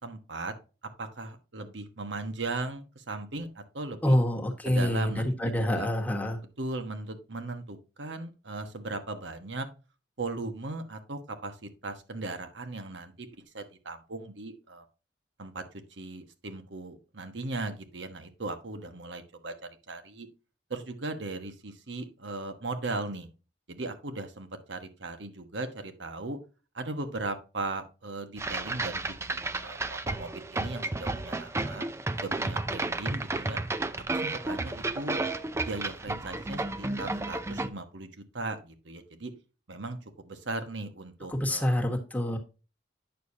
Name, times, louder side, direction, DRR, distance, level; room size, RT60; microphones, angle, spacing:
voice 1, 0.0-0.5 1.0-4.2 4.6-5.9 6.6-9.7 10.2-13.3 13.5-14.9 15.4-15.6 15.9-19.5 19.9-20.3 20.7-23.3 23.7-26.4 26.7-29.0 29.3-31.9 32.1-33.6 34.1-35.2 35.6-39.3 39.7-41.8, right 2 dB, 75° right, 8 dB, 1.2 m, -38 dB
voice 2, 4.0-6.4 41.3-42.4, left 1 dB, 10° left, 2 dB, 1.3 m, -27 dB
sound 1, 28.4-37.7, right 2 dB, 15° right, 0.4 m, -32 dB
9.2 x 6.5 x 2.7 m, 0.32 s
head